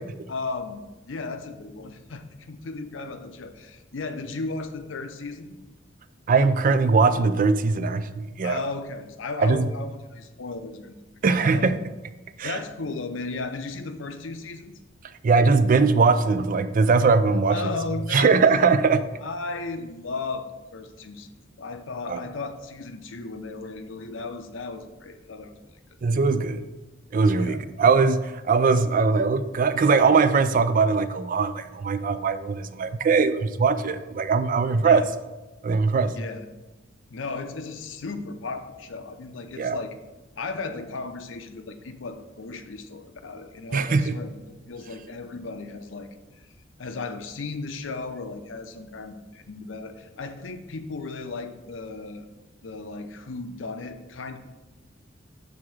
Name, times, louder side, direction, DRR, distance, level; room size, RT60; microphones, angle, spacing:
voice 1, 0.3-5.5 8.4-11.8 12.4-14.7 17.5-18.4 19.2-25.6 27.3-27.6 34.8-35.0 36.1-36.4 37.1-40.0 40.4-46.5 46.8-52.3 52.6-54.4, left 3 dB, 80° left, 8 dB, 0.6 m, -35 dB
voice 2, 6.3-8.6 9.4-9.7 11.2-11.8 12.4-12.6 15.2-17.6 18.1-19.0 22.1-22.2 26.0-26.6 27.1-35.0 35.6-36.1 39.6-39.8 43.7-44.1, right 4 dB, 45° right, 12 dB, 0.4 m, -21 dB
6.5 x 3.7 x 5.9 m, 1.1 s
head